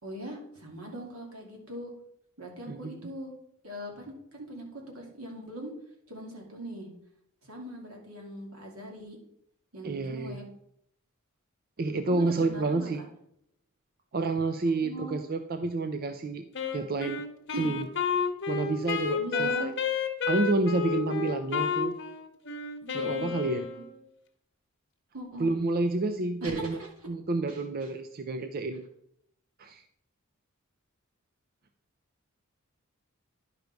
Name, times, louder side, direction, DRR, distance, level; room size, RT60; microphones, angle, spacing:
voice 1, 0.0-1.9 2.4-3.3 3.6-5.7 6.1-6.9 7.4-9.2 9.7-10.5 12.1-13.1 14.8-15.2 17.5-17.7 19.2-19.7 22.8-23.8 25.1-25.5 26.4-26.9 27.5-27.9, right 1 dB, 85° right, 0 dB, 2.6 m, -41 dB
voice 2, 9.8-10.4 11.8-13.0 14.1-16.4 16.7-17.2 17.6-17.9 18.5-19.7 20.3-21.9 22.9-23.7 25.4-26.8 27.1-28.8 29.6-29.8, right 3 dB, 45° right, 8 dB, 0.5 m, -29 dB
Wind instrument woodwind instrument, 16.5-24.0, left 5 dB, 60° left, 1.1 m, -31 dB
11.0 x 5.2 x 4.6 m, 0.73 s
head